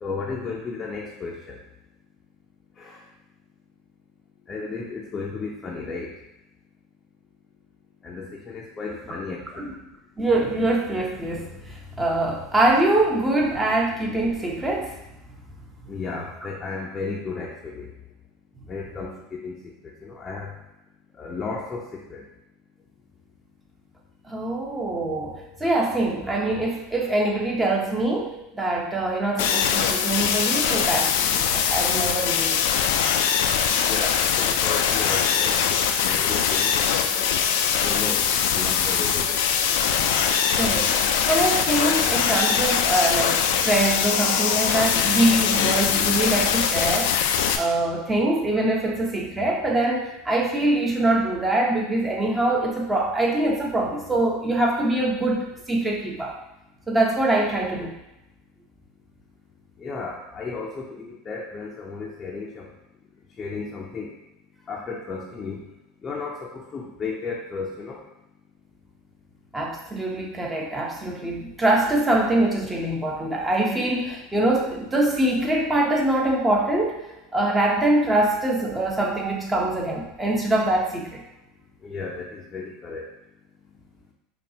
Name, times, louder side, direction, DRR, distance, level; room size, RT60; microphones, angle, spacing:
voice 1, 0.0-1.6 2.8-3.0 4.5-6.1 8.0-9.4 15.9-17.9 18.7-19.5 20.0-20.5 21.2-21.8 22.1-22.2 33.8-37.3 37.8-39.4 59.8-62.7 63.4-64.1 64.7-65.6 66.0-68.0 81.8-83.0, left 4 dB, 25° left, -3 dB, 0.6 m, -34 dB
voice 2, 10.2-15.0 24.3-32.6 40.6-41.0 41.3-47.1 47.6-56.4 56.9-57.9 69.5-77.0 77.3-81.2, right 2 dB, 15° right, -1 dB, 0.9 m, -24 dB
sound 1, 29.4-47.6, left 8 dB, 75° left, 0.4 m, -22 dB
5.2 x 2.4 x 2.8 m, 0.91 s
hypercardioid pair, 105°, 0 cm